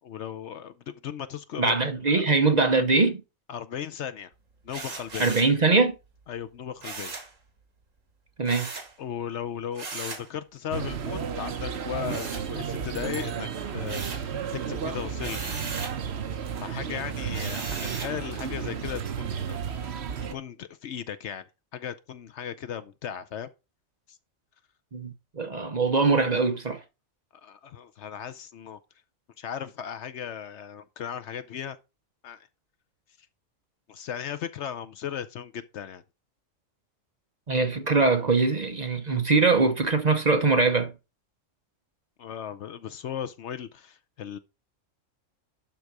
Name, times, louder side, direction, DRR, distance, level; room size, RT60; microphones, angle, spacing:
voice 1, 0.0-1.8 2.1-2.2 3.5-4.3 4.6-5.4 6.3-7.1 9.0-15.5 16.6-19.6 20.3-21.5 21.7-23.5 24.1-24.2 27.3-28.8 29.4-31.8 32.2-32.5 33.9-36.0 42.2-44.4, left 9 dB, 65° left, 0.9 m, -36 dB
voice 2, 1.6-3.2 5.2-6.0 8.4-8.7 24.9-26.8 37.5-40.9, right 3 dB, 35° right, 0.8 m, -22 dB
sound 1, 4.7-5.6 6.8-7.3 8.4-8.9 9.7-10.3 12.1-12.9 13.3-14.3 15.2-16.0 17.3-18.2, right 4 dB, 75° right, 2.1 m, -38 dB
sound 2, 10.7-20.3, right 7 dB, 60° right, 1.1 m, -33 dB
12.0 x 3.9 x 4.7 m
omnidirectional pair, 1.4 m